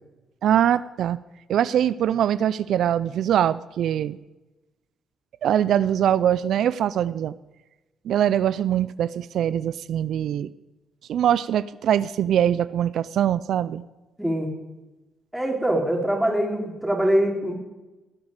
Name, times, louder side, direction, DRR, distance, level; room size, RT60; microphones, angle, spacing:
voice 1, 0.4-1.2 1.5-4.2 5.4-7.3 8.1-10.5 11.1-13.8, right 10 dB, 70° right, 16 dB, 0.4 m, -22 dB
voice 2, 14.2-14.5 15.3-17.6, right 1 dB, 5° right, 0 dB, 3.1 m, -23 dB
17.0 x 8.2 x 5.1 m, 1.1 s
cardioid pair, 90°, 0 cm